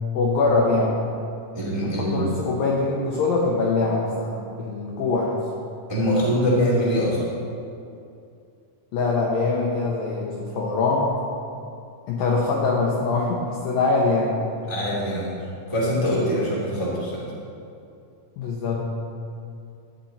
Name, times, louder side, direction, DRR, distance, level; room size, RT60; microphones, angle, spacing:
voice 1, 0.1-1.1 1.8-5.5 8.9-11.2 12.1-14.5 18.4-18.8, left 3 dB, 75° left, -2 dB, 2.1 m, -23 dB
voice 2, 1.5-2.3 5.9-7.2 14.7-17.3, equal, 10° right, -7 dB, 1.4 m, -23 dB
14.0 x 8.7 x 4.2 m, 2.5 s
omnidirectional pair, 5.2 m